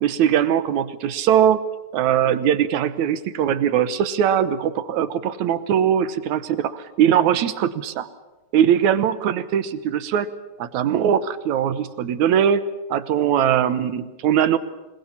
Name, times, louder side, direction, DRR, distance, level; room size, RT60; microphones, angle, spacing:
voice 1, 0.0-1.6 1.9-8.1 8.5-10.3 10.6-12.6 12.9-14.6, right 9 dB, 70° right, 13 dB, 2.2 m, -20 dB
27.0 x 20.5 x 7.2 m, 1.1 s
omnidirectional pair, 3.8 m